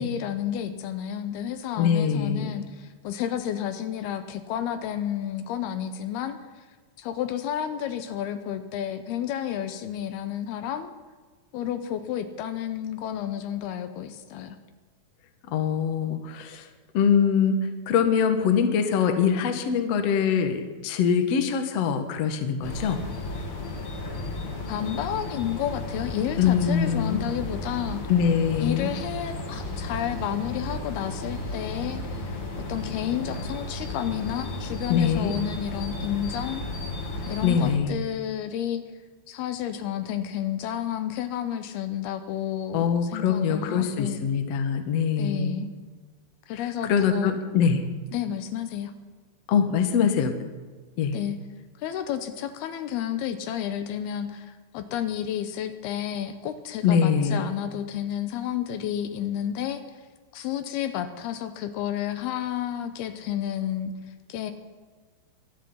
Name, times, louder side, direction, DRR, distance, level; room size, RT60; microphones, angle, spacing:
voice 1, 0.0-6.4 7.0-10.9 11.5-14.6 24.7-28.1 28.6-32.3 32.6-36.6 37.3-38.8 39.3-44.3 45.2-45.7 46.5-47.4 48.1-48.9 51.1-51.4 51.8-59.8 60.3-63.9 64.3-64.5, left 10 dB, 75° left, 9 dB, 2.7 m, -31 dB
voice 2, 1.8-2.5 15.5-16.7 16.9-17.6 17.9-23.0 26.4-27.2 28.1-28.9 34.9-35.3 37.4-38.0 42.7-45.6 46.6-47.8 49.5-50.3 51.0-51.2 56.8-57.5, left 7 dB, 60° left, 6 dB, 1.7 m, -23 dB
sound 1, 22.6-37.8, left 2 dB, 40° left, 2.3 m, -34 dB
24.0 x 10.5 x 5.6 m, 1.4 s
omnidirectional pair, 4.8 m